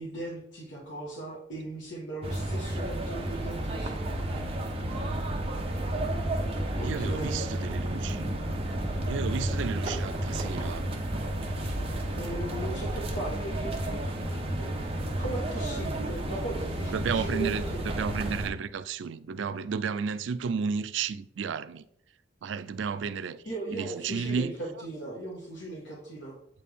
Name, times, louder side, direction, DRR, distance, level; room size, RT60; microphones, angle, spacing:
voice 1, 0.0-4.6 6.8-7.6 12.1-14.0 14.6-14.8 15.2-17.8 23.4-26.4, right 2 dB, 70° left, 1.6 m, -38 dB
sound 1, 2.2-18.5, right 1 dB, 30° right, 0.9 m, -32 dB
voice 2, 6.8-8.3 9.1-10.9 16.9-21.8 22.4-23.4 23.7-24.5, right 6 dB, 75° right, 0.4 m, -32 dB
8.2 x 4.2 x 3.5 m
head